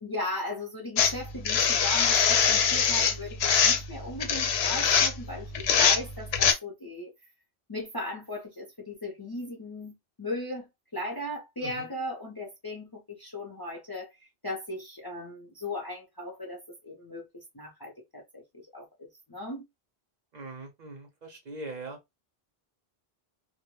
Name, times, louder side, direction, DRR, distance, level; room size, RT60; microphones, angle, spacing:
voice 1, 0.0-7.1 7.7-10.7 10.9-14.1 14.4-18.4 18.7-19.6, left 1 dB, 30° left, 0.5 m, -37 dB
sound 1, 1.0-6.5, left 7 dB, 80° left, 0.8 m, -23 dB
voice 2, 20.3-22.0, right 2 dB, 50° right, 0.7 m, -41 dB
2.1 x 2.1 x 3.0 m
omnidirectional pair, 1.1 m